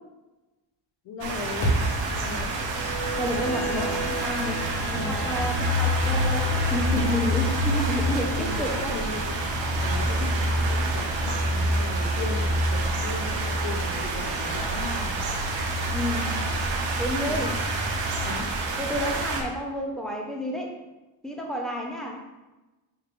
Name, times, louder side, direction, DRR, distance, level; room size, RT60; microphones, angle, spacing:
voice 1, 1.0-2.6 4.9-5.3 6.9-7.1 8.4-8.7 8.9-9.3 9.8-15.3 17.3-17.6 18.2-18.5, left 3 dB, 70° left, 3 dB, 0.8 m, -37 dB
sound 1, 1.2-19.4, right 1 dB, 85° right, 0.9 m, -27 dB
sound 2, 1.6-5.9, right 1 dB, 55° left, 1.1 m, -32 dB
sound 3, 2.5-15.5, right 2 dB, 30° right, 1.4 m, -37 dB
voice 2, 3.2-9.0 15.9-16.4 17.0-17.5 18.8-20.7 21.2-22.2, left 1 dB, ahead, 0 dB, 0.5 m, -30 dB
5.3 x 3.3 x 2.5 m, 1.1 s
cardioid pair, 125°, 45 cm